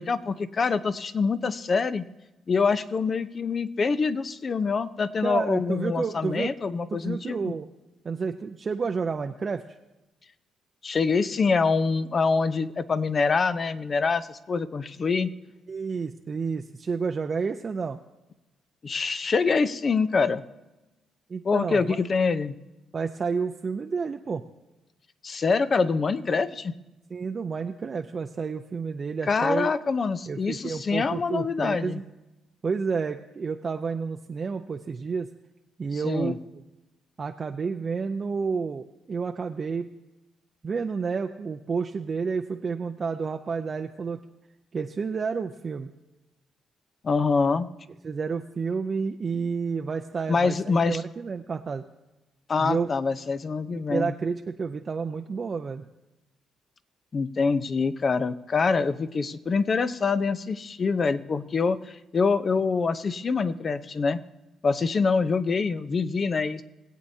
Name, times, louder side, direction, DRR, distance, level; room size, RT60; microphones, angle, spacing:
voice 1, 0.0-2.0 2.5-7.4 10.8-15.3 18.8-20.4 21.4-22.5 25.2-26.7 29.3-32.0 36.0-36.4 47.0-47.7 50.3-51.0 52.5-54.1 57.1-64.2 64.6-66.6, left 4 dB, 40° left, 13 dB, 0.6 m, -25 dB
voice 2, 5.2-6.5 6.9-7.7 8.0-9.6 15.7-18.0 21.3-22.0 22.9-24.4 27.1-29.7 30.3-32.1 32.6-35.3 35.8-36.6 37.2-39.9 40.6-44.2 44.7-45.9 48.0-51.8 52.6-52.9 53.7-55.8, right 5 dB, 40° right, 4 dB, 0.5 m, -30 dB
20.0 x 8.4 x 2.7 m, 1.0 s
cardioid pair, 90°, 0 cm